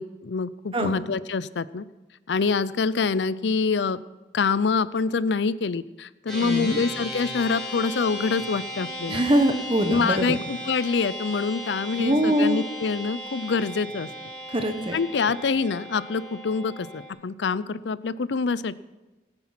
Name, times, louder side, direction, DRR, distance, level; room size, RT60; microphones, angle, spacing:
voice 1, 0.0-1.8 2.3-4.0 4.3-9.2 9.9-14.1 14.9-18.8, left 4 dB, 75° left, 17 dB, 0.5 m, -26 dB
sound 1, 6.3-17.1, equal, ahead, 6.3 m, -36 dB
voice 2, 6.4-6.8 9.1-10.4 12.0-12.6 14.5-15.0, right 1 dB, 30° right, 6 dB, 1.3 m, -23 dB
17.0 x 9.8 x 5.9 m, 1.1 s
head